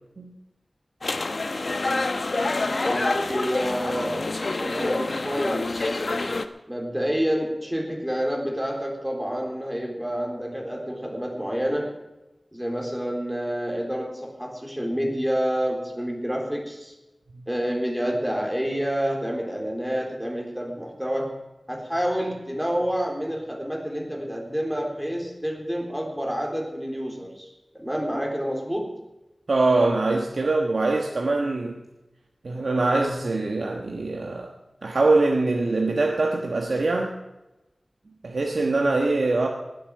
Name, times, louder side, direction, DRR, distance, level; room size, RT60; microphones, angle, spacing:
sound 1, 1.0-6.5, left 2 dB, 65° left, 1.0 m, -27 dB
voice 1, 2.8-6.1 6.7-12.0 12.5-16.9 17.5-21.4 21.7-28.9, equal, 5° right, 3.9 m, -28 dB
voice 2, 29.5-31.8 32.4-34.5 34.8-37.1 38.2-39.5, right 3 dB, 85° right, 1.3 m, -23 dB
19.5 x 8.5 x 6.6 m
wide cardioid pair, 65°, 0 cm